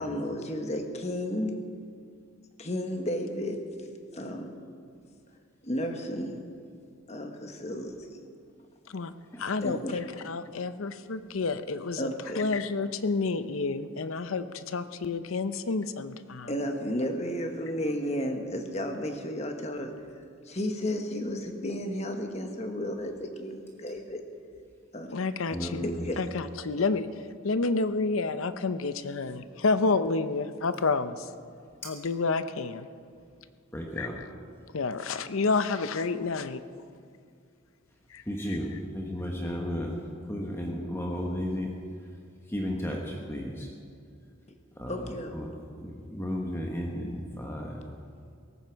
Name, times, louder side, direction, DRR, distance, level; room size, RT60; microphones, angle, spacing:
voice 1, 0.0-1.5 2.6-3.6 4.1-4.5 5.6-6.4 7.1-8.2 9.6-9.9 12.0-12.5 16.5-24.2 24.9-25.1 25.8-26.3 44.9-45.4, equal, 30° left, 5 dB, 1.4 m, -33 dB
voice 2, 9.4-12.1 12.3-16.5 25.1-25.9 26.2-27.1 27.4-31.3 31.8-32.9 34.0-34.2 34.7-36.6 38.1-38.2 38.5-38.6, left 4 dB, 85° left, 12 dB, 0.7 m, -29 dB
voice 3, 25.5-26.1 33.7-34.2 38.3-40.0 40.3-41.7 42.5-43.7 44.8-45.0 45.3-45.5 45.8-47.8, equal, 10° left, 0 dB, 1.2 m, -33 dB
18.0 x 15.0 x 4.7 m, 2.3 s
head